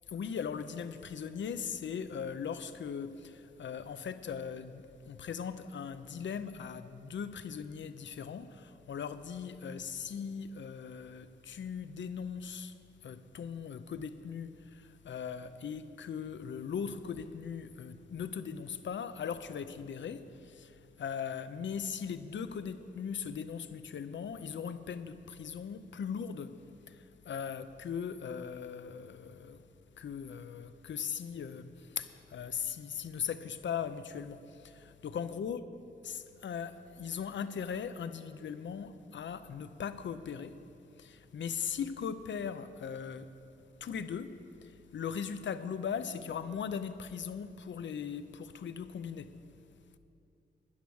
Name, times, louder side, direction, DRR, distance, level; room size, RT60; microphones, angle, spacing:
voice 1, 0.1-12.8 13.0-26.5 26.9-29.6 30.0-35.6 36.0-40.6 41.0-43.3 43.8-44.3 44.6-49.3, left 7 dB, 75° left, 0.6 m, -39 dB
11.5 x 10.5 x 6.3 m
wide cardioid pair, 165°, 19 cm